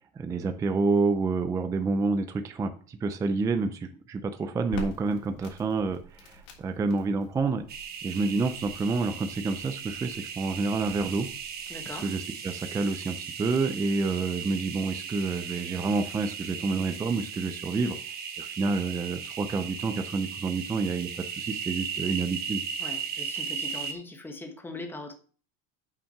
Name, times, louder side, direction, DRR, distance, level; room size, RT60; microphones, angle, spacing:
voice 1, 0.2-7.6 8.0-11.3 12.0-18.0 18.4-22.6, right 4 dB, 10° right, 0.4 m, -28 dB
Crackle, 4.7-12.0, equal, 70° left, 3.3 m, -46 dB
sound 1, 7.7-23.9, right 7 dB, 30° right, 1.2 m, -37 dB
voice 2, 11.7-12.1 22.8-25.1, left 2 dB, 5° left, 1.2 m, -40 dB
7.2 x 5.8 x 5.7 m
cardioid pair, 155°, 32 cm